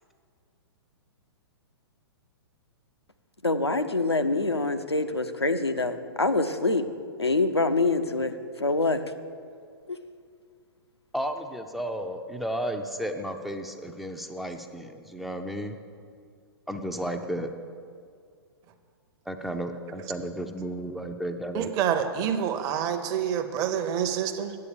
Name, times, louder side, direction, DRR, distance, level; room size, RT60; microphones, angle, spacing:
voice 1, 3.4-6.9 7.2-8.3 8.6-9.0 9.9-10.0, left 3 dB, 90° left, 8 dB, 0.7 m, -25 dB
voice 2, 11.1-15.8 16.7-17.5 19.3-21.7, equal, ahead, 5 dB, 0.4 m, -33 dB
voice 3, 21.5-24.6, right 8 dB, 25° right, 7 dB, 0.7 m, -27 dB
8.6 x 8.3 x 6.8 m, 2.2 s
figure-of-eight pair, 110°, 13 cm